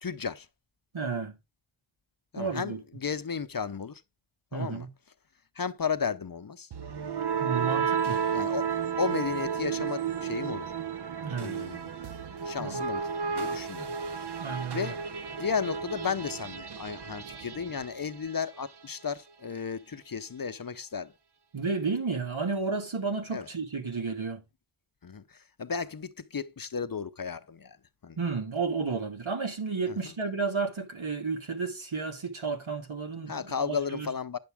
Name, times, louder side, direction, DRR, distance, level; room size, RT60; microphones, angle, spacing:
voice 1, 0.0-0.5 2.3-4.0 4.5-4.9 5.6-6.7 8.3-8.6 9.0-10.7 11.4-11.9 12.4-13.9 14.7-15.0 15.4-21.1 23.3-23.5 25.0-27.8 28.0-28.2 29.9-30.1 33.3-34.4, left 6 dB, 45° left, 0.7 m, -34 dB
voice 2, 0.9-1.3 2.3-2.8 4.5-4.9 7.4-8.2 11.2-11.6 12.6-12.8 13.7-13.9 14.4-14.9 21.5-24.4 28.2-34.1, right 4 dB, 75° right, 2.1 m, -32 dB
sound 1, 6.7-18.6, right 7 dB, 55° right, 0.7 m, -32 dB
9.6 x 7.0 x 3.4 m
wide cardioid pair, 65°, 49 cm